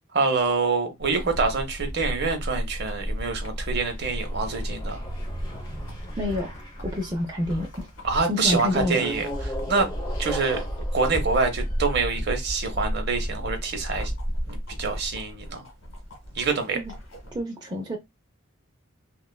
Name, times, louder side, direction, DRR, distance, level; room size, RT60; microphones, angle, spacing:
voice 1, 0.1-5.0 8.0-9.9 10.2-10.7 10.9-14.1 14.5-15.6 16.4-16.8, right 4 dB, 55° right, 0.7 m, -26 dB
sound 1, 1.0-17.4, equal, 80° left, 1.3 m, -33 dB
sound 2, 3.4-7.9 8.7-12.3, equal, 20° left, 0.7 m, -39 dB
voice 2, 6.2-6.5 6.8-7.9 8.3-9.1 16.7-16.9 17.3-18.0, left 1 dB, 20° right, 0.4 m, -28 dB
3.0 x 2.4 x 2.2 m
head